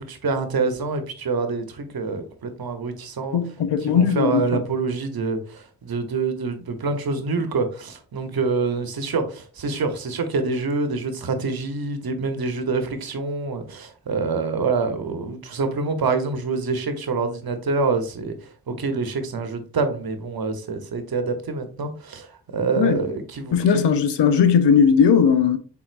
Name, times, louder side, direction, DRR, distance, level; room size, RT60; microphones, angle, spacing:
voice 1, 0.0-3.4 3.8-18.3 18.7-22.3 22.5-23.8, right 4 dB, 60° right, 0.9 m, -26 dB
voice 2, 3.3-4.6 22.8-23.0 23.5-25.6, left 7 dB, 90° left, 0.6 m, -18 dB
4.4 x 3.6 x 2.5 m
cardioid pair, 55°, 41 cm